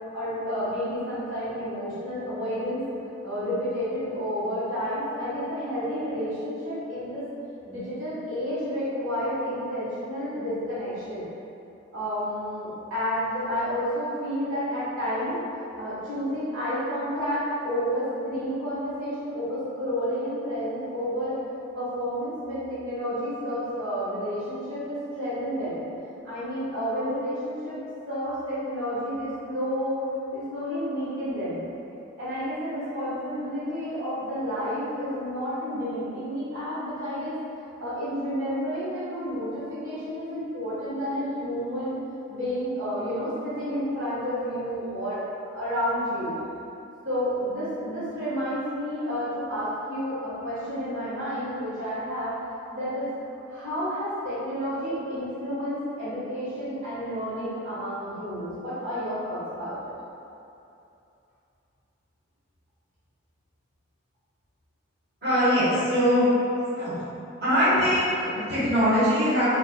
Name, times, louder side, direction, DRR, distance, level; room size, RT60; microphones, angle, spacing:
voice 1, 0.1-2.8 3.2-7.2 7.6-11.3 11.9-15.4 15.7-21.4 21.7-25.8 26.2-27.8 28.0-31.6 32.2-42.0 42.3-46.4 47.0-52.3 52.7-53.1 53.5-59.8, equal, 85° right, -12 dB, 1.4 m, -30 dB
voice 2, 65.2-66.3 66.7-66.9 67.4-69.5, equal, 55° right, -13 dB, 1.3 m, -22 dB
4.3 x 2.4 x 2.2 m, 2.7 s
head